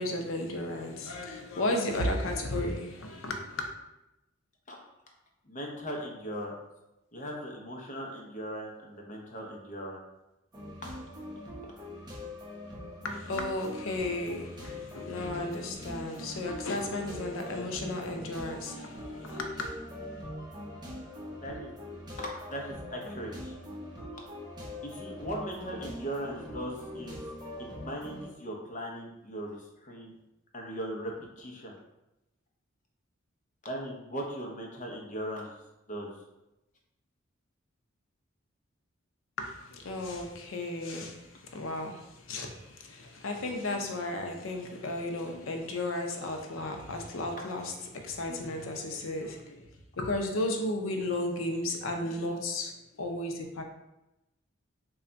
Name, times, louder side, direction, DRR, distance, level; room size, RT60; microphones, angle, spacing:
voice 1, 0.0-3.7 13.0-19.7 39.4-49.7 50.0-53.6, left 2 dB, 85° left, 4 dB, 0.6 m, -34 dB
voice 2, 5.4-6.6 7.1-10.0 10.8-10.9 21.4-21.7 22.2-23.5 24.8-27.2 27.6-30.2 30.5-31.7 33.6-35.6 35.9-36.1, equal, 40° left, 0 dB, 0.7 m, -39 dB
sound 1, 10.5-28.2, left 1 dB, 20° right, 0.7 m, -42 dB
3.3 x 2.3 x 3.9 m, 0.95 s
head